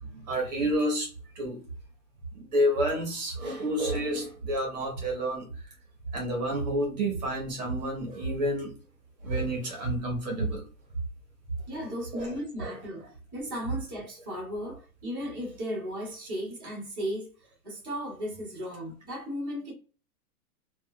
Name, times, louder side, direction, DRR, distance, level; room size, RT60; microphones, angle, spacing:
voice 1, 0.1-1.1 1.4-1.6 2.3-5.5 6.1-8.7 9.2-10.6 12.1-12.3 12.6-12.7, right 1 dB, 30° right, 0.7 m, -29 dB
voice 2, 11.7-13.0 13.3-17.3 17.6-19.7, equal, 5° left, 0.5 m, -35 dB
3.0 x 2.2 x 2.7 m
supercardioid pair, 175°, 45 cm